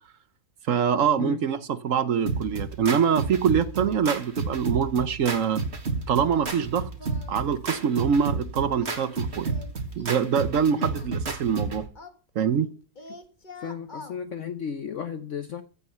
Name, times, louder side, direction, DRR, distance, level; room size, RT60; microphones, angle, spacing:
voice 1, 0.7-5.6 6.1-6.9 7.3-9.5 10.0-11.9 12.3-12.7, right 7 dB, 60° right, 1.1 m, -24 dB
sound 1, 2.3-11.9, right 4 dB, 40° right, 2.2 m, -31 dB
Singing, 6.3-6.7 7.0-7.4 7.6-7.9 8.7-10.3 10.9-12.7 12.9-14.2, left 2 dB, 30° left, 1.5 m, -46 dB
voice 2, 13.6-15.6, left 7 dB, 55° left, 1.0 m, -34 dB
15.5 x 8.1 x 5.6 m
omnidirectional pair, 1.7 m